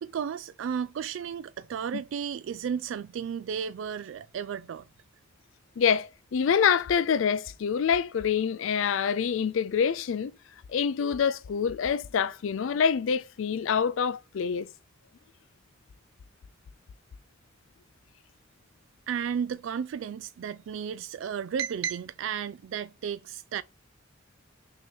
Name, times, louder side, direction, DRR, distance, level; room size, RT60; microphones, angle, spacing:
voice 1, 0.0-4.9 19.1-23.6, right 7 dB, 70° right, 0.3 m, -33 dB
voice 2, 5.8-10.3 10.7-14.7, left 7 dB, 75° left, 0.4 m, -26 dB
6.2 x 2.9 x 5.3 m
head